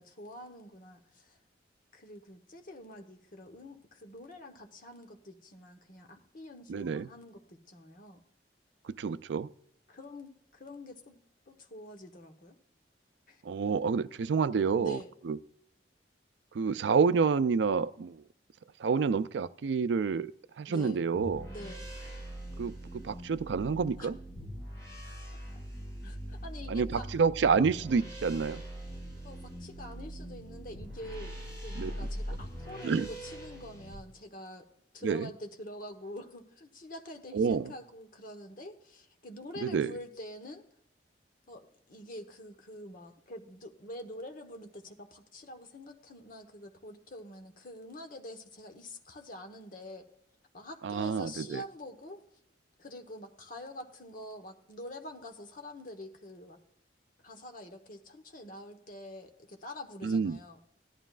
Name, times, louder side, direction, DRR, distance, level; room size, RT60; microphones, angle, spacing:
voice 1, 0.0-1.4 1.9-8.2 9.9-11.2 11.5-12.6 13.3-13.4 14.8-15.1 20.7-21.0 21.4-21.9 24.0-24.1 26.0-27.1 29.2-34.7 34.9-40.6 41.5-50.1 50.5-52.2 52.8-56.6 57.2-60.6, left 1 dB, 50° left, 1.1 m, -46 dB
voice 2, 6.7-7.1 8.8-9.5 13.4-15.0 15.3-15.4 16.5-18.2 18.8-20.3 20.6-21.5 22.6-24.2 26.7-28.6 31.8-31.9 32.8-33.1 35.0-35.3 37.3-37.7 39.6-39.9 50.8-51.6 60.0-60.4, right 5 dB, 80° right, 0.4 m, -28 dB
sound 1, 21.1-33.9, equal, 20° left, 5.1 m, -42 dB
16.0 x 11.5 x 2.4 m
head